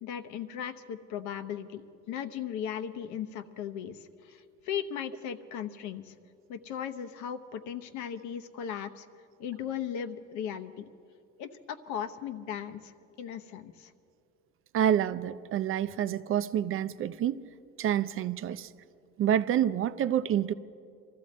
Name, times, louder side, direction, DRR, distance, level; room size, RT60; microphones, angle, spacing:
voice 1, 0.0-6.1 6.5-9.1 9.4-10.9 11.4-13.9, left 9 dB, 75° left, 9 dB, 1.0 m, -37 dB
voice 2, 14.7-17.4 17.8-18.7 19.2-20.5, right 10 dB, 45° right, 14 dB, 0.6 m, -28 dB
24.5 x 14.0 x 4.2 m, 2.4 s
cardioid pair, 115°, 30 cm